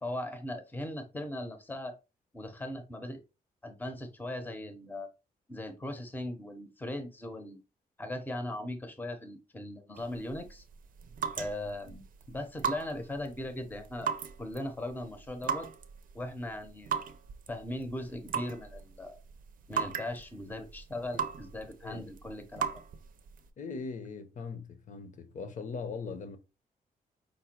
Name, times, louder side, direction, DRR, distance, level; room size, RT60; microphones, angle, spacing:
voice 1, 0.0-2.0 2.3-3.2 3.6-5.1 5.5-7.6 8.0-10.6 11.4-14.1 14.4-15.7 16.1-17.0 17.5-19.2 19.7-22.7, left 1 dB, 10° left, 0.7 m, -39 dB
sound 1, 9.9-23.5, right 7 dB, 60° right, 0.5 m, -39 dB
voice 2, 23.6-26.4, left 4 dB, 55° left, 0.8 m, -40 dB
5.2 x 2.2 x 4.3 m
wide cardioid pair, 150°, 15 cm